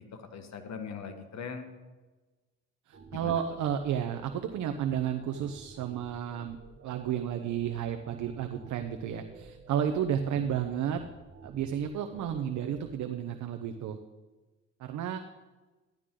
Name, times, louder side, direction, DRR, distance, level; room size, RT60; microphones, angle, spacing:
voice 1, 0.0-1.7 3.1-3.4, left 6 dB, 60° left, 7 dB, 1.5 m, -41 dB
sound 1, 2.9-12.9, right 3 dB, 50° right, 1.9 m, -52 dB
voice 2, 2.9-6.6 6.8-11.0 11.4-14.0 14.8-15.2, right 9 dB, 70° right, 6 dB, 0.8 m, -32 dB
13.5 x 11.0 x 3.8 m, 1.2 s
cardioid pair, 90°, 30 cm